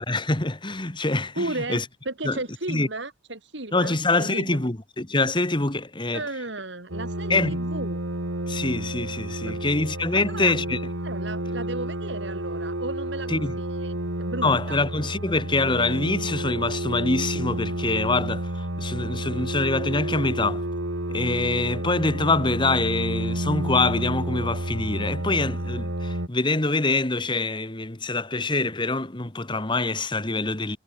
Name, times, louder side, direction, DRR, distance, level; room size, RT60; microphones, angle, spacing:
voice 1, 0.1-1.8 2.2-2.4 2.7-2.9 3.7-6.2 7.3-7.5 8.5-10.8 13.3-13.5 14.4-20.6 21.1-30.8, left 3 dB, 25° left, 1.6 m, -25 dB
voice 2, 1.4-4.6 6.1-8.0 9.4-9.6 10.1-10.5 11.0-14.8, right 2 dB, 60° right, 3.1 m, -34 dB
sound 1, 6.9-26.3, right 1 dB, 85° right, 4.2 m, -30 dB
head